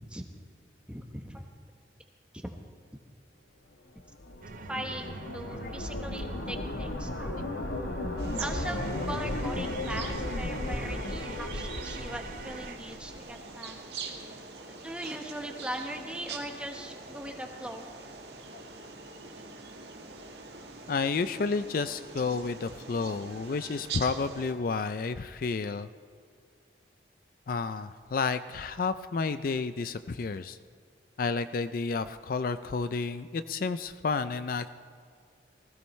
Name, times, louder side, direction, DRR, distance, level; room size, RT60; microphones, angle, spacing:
voice 1, 0.9-1.4 2.3-2.5 4.7-7.4 8.4-13.8 14.7-17.9, right 1 dB, 5° right, 3 dB, 1.1 m, -40 dB
sound 1, 4.0-13.2, left 1 dB, 85° left, 1.2 m, -35 dB
sound 2, 4.4-12.8, right 4 dB, 50° right, 0.6 m, -45 dB
sound 3, 8.2-24.5, right 4 dB, 70° right, 1.7 m, -44 dB
voice 2, 20.9-25.9 27.5-30.6 31.2-34.7, left 4 dB, 50° left, 12 dB, 0.4 m, -31 dB
20.0 x 16.0 x 3.2 m, 2.3 s
head